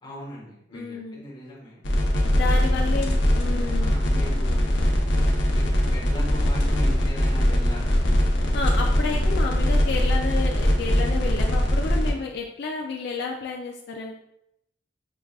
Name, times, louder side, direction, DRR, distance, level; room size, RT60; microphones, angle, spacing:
voice 1, 0.0-1.8 2.5-3.1 3.8-4.9 5.5-8.0, equal, 25° left, -5 dB, 1.1 m, -39 dB
voice 2, 0.7-1.2 2.2-4.0 8.5-14.2, left 4 dB, 60° left, 0 dB, 0.4 m, -31 dB
sound 1, 1.8-12.1, equal, 90° left, 0.7 m, -21 dB
6.0 x 2.3 x 2.3 m, 0.79 s
head